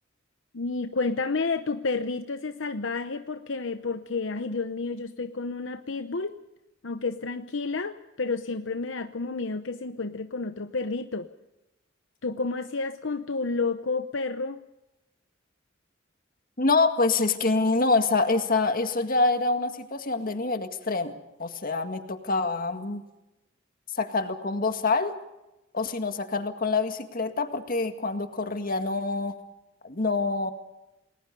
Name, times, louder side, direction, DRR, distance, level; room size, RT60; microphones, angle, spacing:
voice 1, 0.5-6.3 6.8-11.3 12.2-14.6, left 3 dB, 70° left, 9 dB, 0.9 m, -30 dB
voice 2, 16.6-23.0 23.9-25.2 25.7-29.4 29.8-30.5, left 3 dB, 50° left, 7 dB, 2.0 m, -26 dB
29.0 x 20.5 x 5.4 m, 0.95 s
head